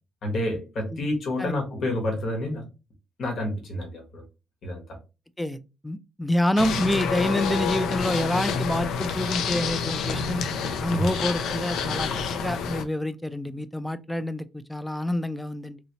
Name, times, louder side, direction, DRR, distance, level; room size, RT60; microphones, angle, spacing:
voice 1, 0.2-2.7 3.2-4.2 4.6-4.8 10.9-11.1, left 1 dB, 60° left, 1.3 m, -29 dB
voice 2, 5.4-10.4 10.8-15.8, left 1 dB, 5° left, 0.4 m, -27 dB
sound 1, 6.6-12.8, left 6 dB, 80° left, 0.5 m, -28 dB
3.1 x 2.8 x 2.8 m
cardioid pair, 90°, 0 cm